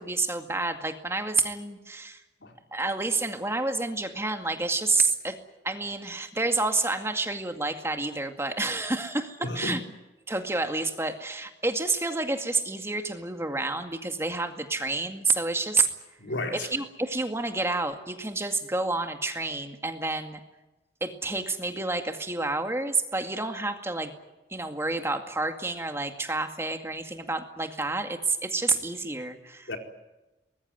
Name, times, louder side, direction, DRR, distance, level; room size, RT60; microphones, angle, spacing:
voice 1, 0.0-2.2 2.7-5.4 5.6-9.8 10.3-15.9 16.5-20.4 21.0-24.1 24.5-29.7, right 3 dB, 15° right, 2.1 m, -29 dB
voice 2, 9.4-9.7 16.2-16.7 29.7-29.8, left 2 dB, 85° left, 4.4 m, -32 dB
23.5 x 21.0 x 9.5 m
head